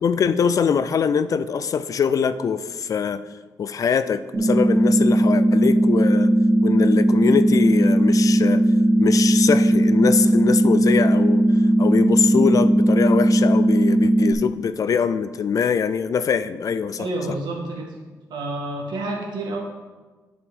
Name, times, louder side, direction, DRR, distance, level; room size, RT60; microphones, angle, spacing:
voice 1, 0.0-3.2 3.6-6.3 6.6-8.6 9.0-11.4 11.8-17.1, left 6 dB, 50° left, 13 dB, 0.4 m, -23 dB
sound 1, 4.3-14.3, right 1 dB, 35° right, 1.2 m, -17 dB
voice 2, 17.0-17.9 18.3-19.6, right 2 dB, 80° right, 0 dB, 1.6 m, -29 dB
9.5 x 5.1 x 3.7 m, 1.3 s
cardioid pair, 110°, 7 cm